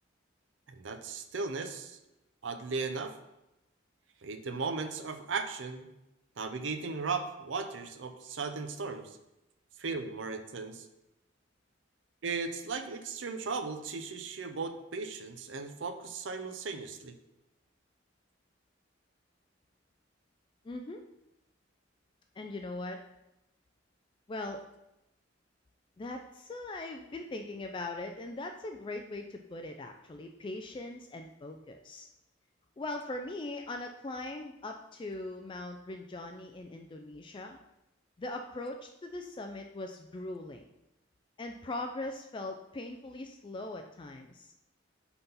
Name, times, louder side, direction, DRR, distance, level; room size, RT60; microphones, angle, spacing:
voice 1, 0.7-2.0 2.4-3.1 4.2-5.9 6.4-9.2 9.8-10.9 12.2-17.1, right 4 dB, 75° right, 7 dB, 0.6 m, -36 dB
voice 2, 20.6-21.0 22.4-23.0 24.3-24.6 26.0-32.1 32.8-37.6 38.2-40.7 41.4-44.5, left 2 dB, 25° left, 4 dB, 0.3 m, -40 dB
5.7 x 4.0 x 5.4 m, 0.92 s
head